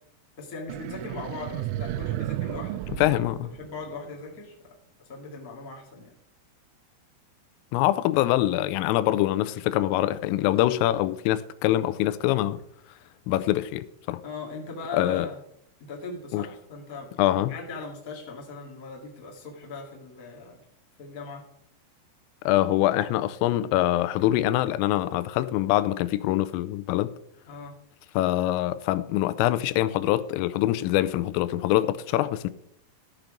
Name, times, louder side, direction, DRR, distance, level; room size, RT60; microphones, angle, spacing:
voice 1, 0.4-4.5 5.0-6.2 14.2-15.4 15.9-17.1 17.5-20.6 21.0-21.4 27.5-27.8, left 3 dB, 65° left, 0.8 m, -39 dB
sound 1, 0.7-4.2, right 14 dB, 85° right, 2.8 m, -33 dB
voice 2, 3.0-3.5 7.7-12.6 13.3-14.2 14.9-15.3 16.3-16.5 17.2-17.5 22.5-27.1 28.2-32.5, left 14 dB, 85° left, 3.2 m, -24 dB
13.5 x 6.0 x 5.1 m
omnidirectional pair, 5.8 m